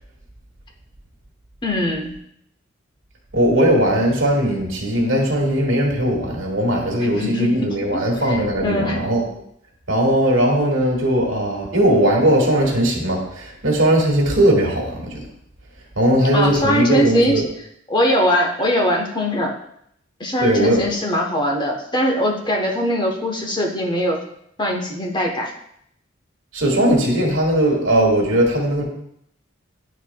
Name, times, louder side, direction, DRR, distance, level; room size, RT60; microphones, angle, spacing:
voice 1, 1.6-2.1 7.0-7.7 8.3-9.0 16.3-17.3 17.9-19.5 20.2-24.2 24.6-25.5, equal, 25° left, 1 dB, 0.9 m, -21 dB
voice 2, 3.3-9.2 9.9-15.2 15.9-17.4 20.4-20.9 26.5-28.8, right 1 dB, 85° right, 0 dB, 1.7 m, -18 dB
10.0 x 4.6 x 2.2 m, 0.72 s
head